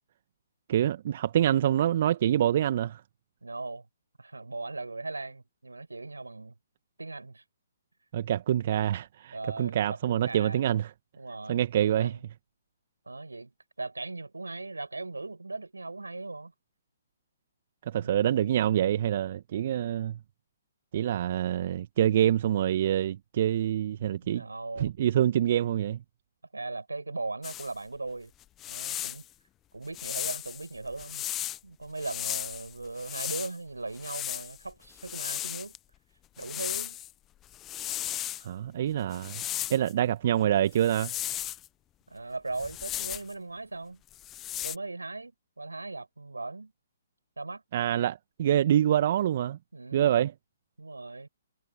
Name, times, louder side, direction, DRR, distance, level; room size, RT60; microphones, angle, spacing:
voice 1, 0.7-3.0 8.1-10.9 11.5-12.2 17.9-20.2 20.9-24.4 24.8-26.0 38.4-39.4 39.7-41.1 47.7-49.6 49.9-50.3, right 11 dB, 45° right, 1.5 m, -26 dB
voice 2, 3.4-3.9 4.2-6.5 7.0-7.4 9.3-10.6 11.2-12.2 13.1-13.5 13.8-16.5 23.9-24.0 24.3-24.9 26.5-28.3 28.7-29.2 29.7-31.2 31.6-35.8 36.4-37.0 42.1-44.0 44.6-45.3 45.6-46.7 47.4-47.6 49.7-50.2 50.8-51.3, right 3 dB, 80° right, 7.8 m, -38 dB
sound 1, 27.4-27.7 28.4-29.2 29.9-31.6 32.0-33.5 33.9-35.8 36.4-37.1 37.4-38.4 39.1-39.9 40.8-41.7 42.5-43.3 44.1-44.8, left 13 dB, 20° left, 1.0 m, -35 dB
figure-of-eight pair, 130°, 0 cm